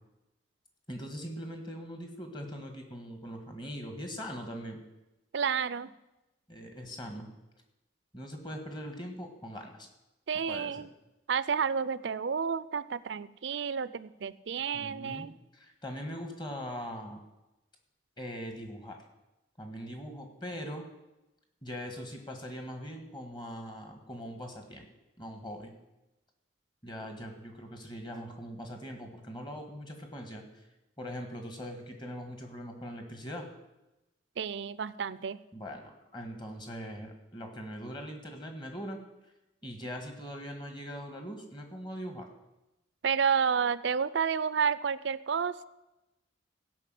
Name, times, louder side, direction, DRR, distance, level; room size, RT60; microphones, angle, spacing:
voice 1, 0.9-4.8 6.5-7.3 8.1-9.9 10.5-10.8 14.7-15.3 15.5-17.2 18.2-19.0 19.6-20.9 21.6-24.9 25.2-25.7 26.8-30.4 31.0-33.4 35.5-39.0 39.6-42.3, equal, 25° left, 4 dB, 1.6 m, -41 dB
voice 2, 5.3-5.9 10.3-10.9 11.3-15.4 34.4-35.4 43.0-45.6, right 6 dB, 65° right, 16 dB, 0.4 m, -30 dB
15.5 x 5.7 x 7.7 m, 0.99 s
head